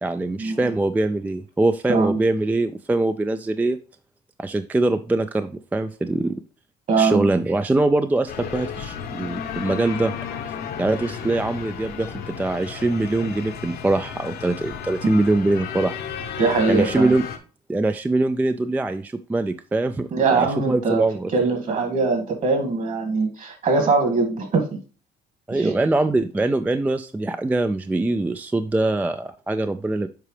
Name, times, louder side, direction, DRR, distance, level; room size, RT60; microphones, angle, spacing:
voice 1, 0.0-3.8 4.4-6.4 7.0-10.1 10.4-10.5 10.8-16.0 16.7-17.2 17.7-21.3 25.5-30.1, right 2 dB, 10° right, 10 dB, 0.3 m, -23 dB
voice 2, 1.9-2.2 6.9-7.3 16.4-17.1 20.1-21.0 21.3-24.8 25.5-25.7, right 4 dB, 50° right, 4 dB, 2.1 m, -22 dB
sound 1, 8.3-17.4, left 8 dB, 65° left, 1.0 m, -33 dB
7.5 x 4.9 x 3.2 m, 0.36 s
cardioid pair, 110°, 17 cm